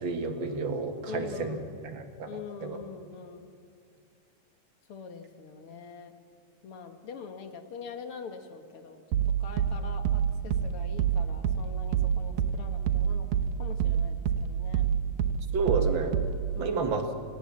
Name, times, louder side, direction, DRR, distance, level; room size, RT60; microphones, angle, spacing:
voice 1, 0.0-1.6 1.9-2.8 15.5-16.2 16.6-17.1, right 4 dB, 45° right, 6 dB, 1.8 m, -30 dB
voice 2, 1.1-1.8 2.3-3.5 4.9-6.1 6.6-13.3 13.6-14.9 16.6-17.0, left 5 dB, 55° left, 6 dB, 1.7 m, -43 dB
sound 1, 9.1-16.6, right 8 dB, 75° right, 2.4 m, -28 dB
29.0 x 18.0 x 7.5 m, 2.2 s
omnidirectional pair, 3.8 m